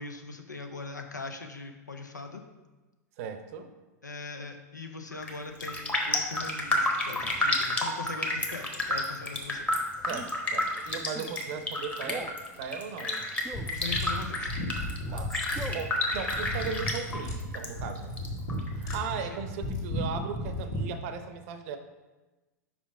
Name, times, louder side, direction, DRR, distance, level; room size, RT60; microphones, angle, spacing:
voice 1, 0.0-2.4 4.0-9.7 13.6-14.5 19.1-19.4, left 3 dB, 90° left, 5 dB, 0.7 m, -41 dB
voice 2, 3.2-3.7 10.1-13.3 15.1-15.4 15.7-18.2 18.7-21.8, right 6 dB, 50° right, 8 dB, 0.7 m, -37 dB
Raindrop, 5.1-5.4 5.6-17.7 18.0-19.0 19.3-19.4, left 1 dB, 15° left, 1.0 m, -30 dB
Male speech man speaking, 10.1-10.4 11.1-11.4 12.0-12.4 13.4-13.8 15.1-15.9, right 1 dB, ahead, 0.4 m, -41 dB
sound 1, 13.5-20.9, left 1 dB, 70° left, 1.8 m, -34 dB
5.0 x 5.0 x 4.8 m, 1.2 s
figure-of-eight pair, 95°, 9 cm